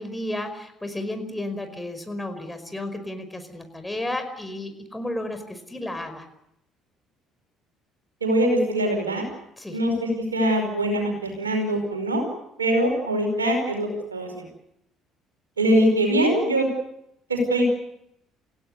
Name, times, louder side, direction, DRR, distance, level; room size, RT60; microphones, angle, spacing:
voice 1, 0.0-6.3 9.6-9.8, left 1 dB, 10° left, 8 dB, 5.2 m, -32 dB
voice 2, 8.2-9.2 9.7-12.2 12.6-14.4 15.6-16.7 17.3-17.6, right 1 dB, 90° right, 4 dB, 5.1 m, -22 dB
29.0 x 16.5 x 8.1 m, 0.80 s
figure-of-eight pair, 55°, 0 cm